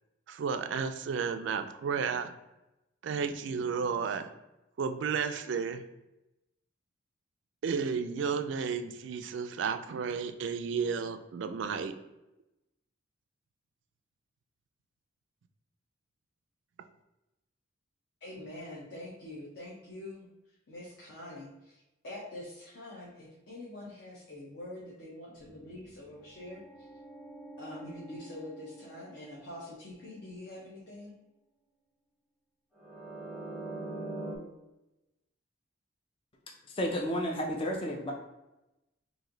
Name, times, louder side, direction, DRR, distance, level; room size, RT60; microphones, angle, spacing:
voice 1, 0.3-2.3 3.0-4.3 4.8-5.8 7.6-11.9, right 6 dB, 65° right, 9 dB, 0.3 m, -32 dB
voice 2, 18.2-20.3 20.7-26.9 27.6-31.1, left 1 dB, 60° left, -5 dB, 0.8 m, -45 dB
sound 1, 25.4-30.3 32.8-34.4, right 2 dB, 5° left, 0.7 m, -44 dB
voice 3, 36.8-38.1, equal, 25° left, 0 dB, 0.4 m, -31 dB
3.1 x 2.6 x 3.7 m, 0.95 s
head